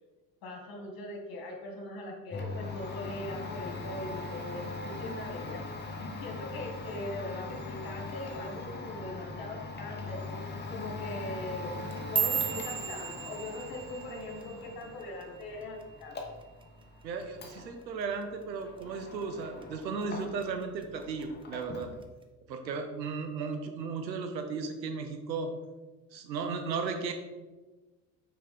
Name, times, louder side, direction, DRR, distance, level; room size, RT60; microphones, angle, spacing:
voice 1, 0.4-5.6 6.0-16.2, left 1 dB, 45° left, 1 dB, 2.0 m, -41 dB
Domestic sounds home sounds, 2.3-20.6 20.9-22.0, left 3 dB, 20° left, 1.0 m, -41 dB
sound 1, 11.7-16.1 16.4-16.8 17.2-17.6 18.0-18.2 18.8-19.2 19.6-20.4 20.8-21.2 22.0-22.1, right 7 dB, 10° right, 0.3 m, -35 dB
voice 2, 17.0-21.9 22.5-25.5 26.1-27.1, right 4 dB, 85° right, 6 dB, 0.8 m, -35 dB
5.9 x 4.9 x 3.5 m, 1.2 s
figure-of-eight pair, 60°, 50 cm